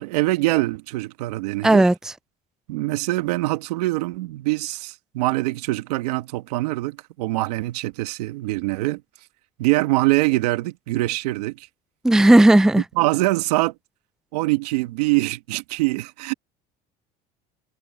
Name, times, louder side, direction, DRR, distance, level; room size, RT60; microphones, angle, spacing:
voice 1, 0.0-1.9 2.7-9.0 9.6-11.7 13.0-13.7 14.3-16.3, right 20 dB, 90° right, 1.5 m, -24 dB
voice 2, 1.6-1.9 12.0-12.8, right 1 dB, 5° right, 0.4 m, -14 dB
supercardioid pair, 90°, 20 cm